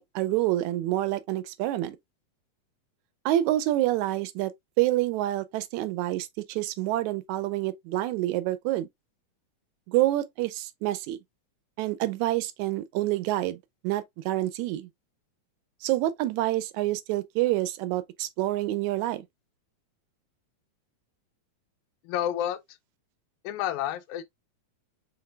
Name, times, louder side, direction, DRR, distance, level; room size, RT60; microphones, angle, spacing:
voice 1, 0.0-2.0 3.3-4.5 4.8-8.9 9.9-11.2 11.8-13.6 13.8-14.9 15.8-19.3, right 15 dB, 80° right, 1.9 m, -27 dB
voice 2, 22.0-22.6 23.4-24.2, left 11 dB, 85° left, 2.0 m, -29 dB
5.8 x 3.3 x 2.3 m
omnidirectional pair, 3.4 m